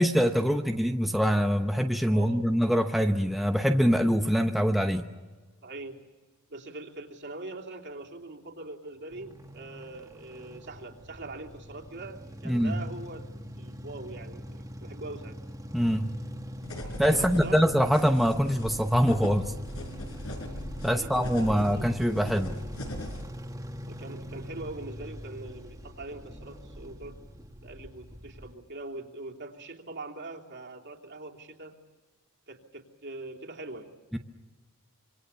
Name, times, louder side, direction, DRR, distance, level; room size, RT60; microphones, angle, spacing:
voice 1, 0.0-5.1 12.4-12.8 15.7-16.1 17.0-19.5 20.8-22.6 34.1-34.2, equal, ahead, 4 dB, 0.8 m, -24 dB
voice 2, 2.1-2.4 5.6-6.0 6.5-13.3 13.6-15.4 17.1-17.6 20.8-21.9 23.9-27.2 27.6-31.8 32.5-33.9, right 2 dB, 55° right, 0 dB, 3.1 m, -42 dB
sound 1, 9.1-28.5, equal, 15° right, 2.0 m, -43 dB
sound 2, 16.6-23.3, equal, 80° left, 5.0 m, -39 dB
26.5 x 25.5 x 7.1 m, 1.3 s
head